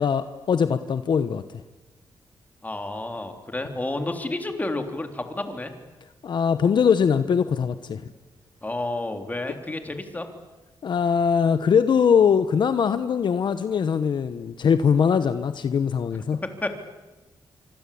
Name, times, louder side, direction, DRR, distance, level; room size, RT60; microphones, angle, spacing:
voice 1, 0.0-1.4 6.2-8.0 10.8-16.4, left 7 dB, 60° left, 11 dB, 1.1 m, -21 dB
voice 2, 2.6-5.7 8.6-10.3 16.6-16.7, left 2 dB, 20° left, 6 dB, 3.5 m, -30 dB
25.5 x 25.0 x 8.6 m, 1.1 s
cardioid pair, 105°, 9 cm